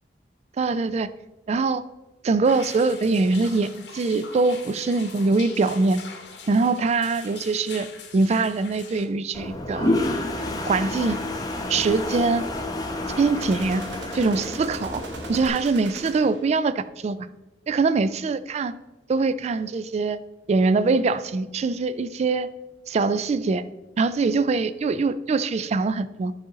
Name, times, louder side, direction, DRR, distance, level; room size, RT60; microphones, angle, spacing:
voice 1, 0.6-1.1 1.5-1.8 2.2-6.0 6.5-7.9 8.1-10.0 10.6-11.2 11.7-12.4 13.1-13.8 14.1-15.0 15.3-17.3 17.7-18.7 19.1-20.2 20.5-22.5 22.9-23.6 24.0-26.3, right 3 dB, 40° right, 15 dB, 0.3 m, -23 dB
sound 1, 2.4-9.0, left 5 dB, 80° left, 1.0 m, -42 dB
Toilet flush, 9.3-15.5, left 1 dB, 20° left, 0.8 m, -29 dB
sound 2, 13.4-16.6, right 2 dB, 85° right, 1.0 m, -39 dB
10.5 x 3.8 x 3.9 m, 1.0 s
head